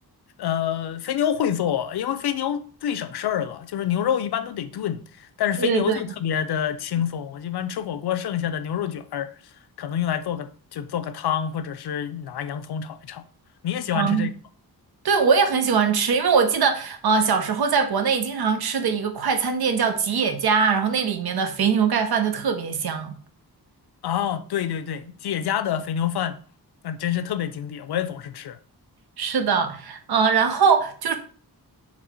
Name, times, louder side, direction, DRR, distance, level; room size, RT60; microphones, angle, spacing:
voice 1, 0.4-9.3 9.8-13.2 13.6-14.3 24.0-26.4 26.8-28.6, left 9 dB, 80° left, 0.5 m, -27 dB
voice 2, 5.6-6.0 13.9-14.3 15.0-23.1 29.2-31.1, right 6 dB, 75° right, 0.8 m, -22 dB
4.1 x 3.0 x 4.2 m
wide cardioid pair, 140°, 38 cm